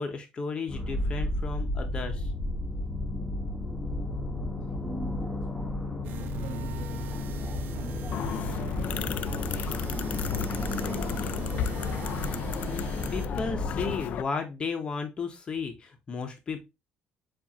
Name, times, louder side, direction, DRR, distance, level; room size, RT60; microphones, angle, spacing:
voice 1, 0.0-2.3 12.7-16.7, left 5 dB, 30° left, 0.8 m, -34 dB
sound 1, 0.7-14.0, left 1 dB, 5° left, 0.9 m, -33 dB
voice 2, 4.8-5.8 6.2-12.0, left 1 dB, 40° right, 2.5 m, -46 dB
sound 2, 6.0-13.3, right 7 dB, 70° right, 0.5 m, -41 dB
sound 3, 8.1-14.2, left 9 dB, 55° left, 0.3 m, -34 dB
7.2 x 2.5 x 2.8 m
cardioid pair, 150°, 3 cm